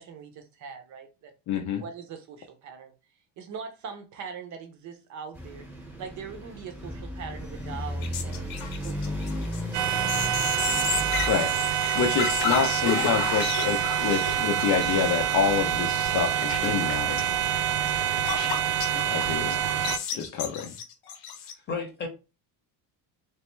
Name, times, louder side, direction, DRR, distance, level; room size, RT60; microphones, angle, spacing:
voice 1, 0.0-1.3 1.8-2.9 3.4-5.7 6.0-10.3, right 6 dB, 40° right, 0.7 m, -42 dB
voice 2, 1.5-1.8 11.3-11.5 11.9-17.2 18.9-19.6 20.1-20.8, left 7 dB, 45° left, 0.6 m, -27 dB
sound 1, 5.3-11.3, equal, 5° right, 1.0 m, -35 dB
sound 2, 8.0-19.2 19.5-21.5, left 7 dB, 65° left, 0.9 m, -33 dB
sound 3, 9.7-20.0, right 9 dB, 85° right, 0.6 m, -26 dB
voice 3, 21.4-22.1, left 4 dB, 25° left, 0.9 m, -34 dB
3.3 x 3.3 x 3.1 m
cardioid pair, 170°, 43 cm